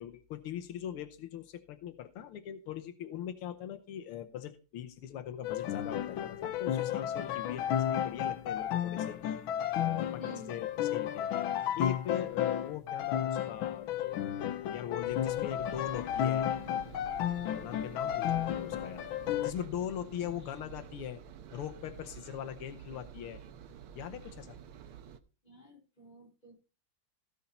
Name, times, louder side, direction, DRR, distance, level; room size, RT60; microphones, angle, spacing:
voice 1, 0.0-9.4 9.8-14.3 14.6-16.5 17.6-19.1 19.4-21.2 21.5-23.4 23.9-24.6, left 10 dB, 90° left, 8 dB, 1.8 m, -41 dB
sound 1, 5.4-19.5, left 10 dB, 75° left, 1.5 m, -33 dB
voice 2, 10.2-10.6 18.1-18.4 25.4-26.5, left 1 dB, 20° left, -3 dB, 4.8 m, -51 dB
Engine, 15.0-25.2, right 8 dB, 90° right, 1.7 m, -50 dB
17.0 x 5.7 x 4.2 m, 0.33 s
omnidirectional pair, 2.3 m